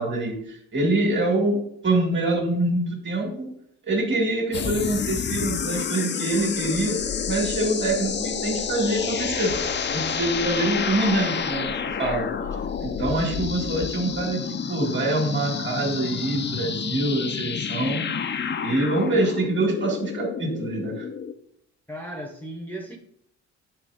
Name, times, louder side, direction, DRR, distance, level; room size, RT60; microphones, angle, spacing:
voice 1, 0.0-1.6 1.8-3.5 3.9-7.0 7.3-9.5 9.9-11.7 12.0-12.3 12.8-18.0 18.6-21.1, right 2 dB, 35° right, 1 dB, 2.2 m, -25 dB
sound 1, 4.5-21.3, left 7 dB, 35° left, 0.6 m, -29 dB
voice 2, 21.9-23.0, right 1 dB, 5° left, 2 dB, 0.9 m, -35 dB
8.5 x 3.1 x 5.0 m, 0.70 s
cardioid pair, 90°, 30 cm